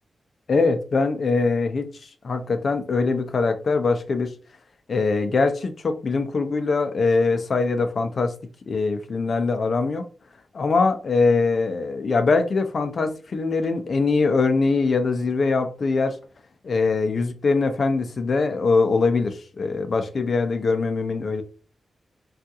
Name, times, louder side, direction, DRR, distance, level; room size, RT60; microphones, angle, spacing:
voice 1, 0.5-1.9 2.2-4.3 4.9-8.3 8.7-10.0 10.5-16.2 16.6-21.4, left 4 dB, 50° left, 0.4 m, -22 dB
3.5 x 2.4 x 2.7 m
wide cardioid pair, 140°, 0 cm